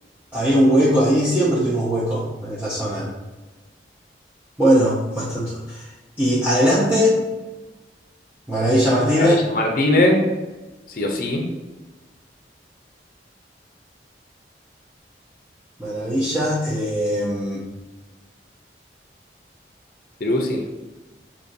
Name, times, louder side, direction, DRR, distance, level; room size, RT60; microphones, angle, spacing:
voice 1, 0.3-3.1 4.6-5.9 6.2-7.2 8.5-9.4 15.8-17.6, equal, 10° right, -10 dB, 0.7 m, -20 dB
voice 2, 9.2-10.3 10.9-11.5 20.2-20.7, left 1 dB, 50° left, 2 dB, 0.6 m, -20 dB
6.7 x 2.9 x 2.6 m, 1.1 s
head